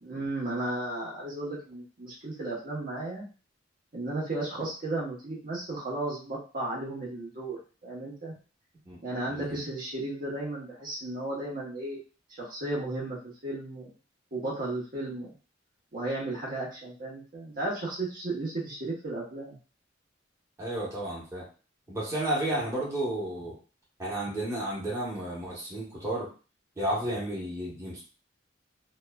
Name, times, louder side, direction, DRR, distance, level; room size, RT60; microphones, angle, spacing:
voice 1, 0.0-3.2 3.9-8.3 9.0-12.0 12.4-13.9 14.3-15.3 15.9-19.6, right 2 dB, 50° right, -5 dB, 0.9 m, -34 dB
voice 2, 9.3-9.6 20.6-21.4 21.9-23.5 24.0-26.3 26.8-28.0, right 1 dB, 15° right, -7 dB, 1.0 m, -32 dB
2.9 x 2.2 x 2.2 m, 0.35 s
head